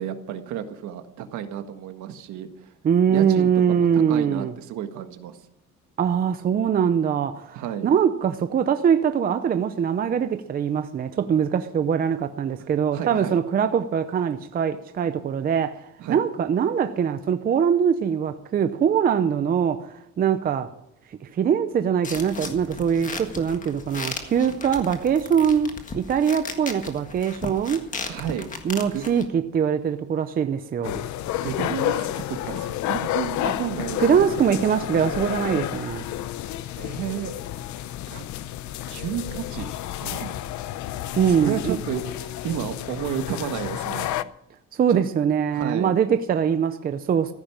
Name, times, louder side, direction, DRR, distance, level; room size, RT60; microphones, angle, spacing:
voice 1, 0.0-2.7 3.1-5.4 7.5-7.9 12.6-13.4 16.0-16.2 28.0-28.5 28.8-29.1 31.4-34.1 36.8-37.3 38.1-38.2 38.9-39.7 40.0-40.3 41.4-44.1 44.9-45.0 45.5-45.9, right 9 dB, 65° right, 1.6 m, -32 dB
voice 2, 2.8-4.5 6.0-15.8 16.1-19.9 20.2-20.7 21.2-27.9 28.6-31.0 33.4-33.5 34.0-36.1 41.2-41.8 44.7-47.3, right 8 dB, 30° right, 0.6 m, -22 dB
sound 1, 22.0-29.3, left 4 dB, 25° left, 1.7 m, -36 dB
sound 2, 30.8-44.2, left 13 dB, 65° left, 0.7 m, -30 dB
14.5 x 10.5 x 7.3 m
cardioid pair, 170°, 31 cm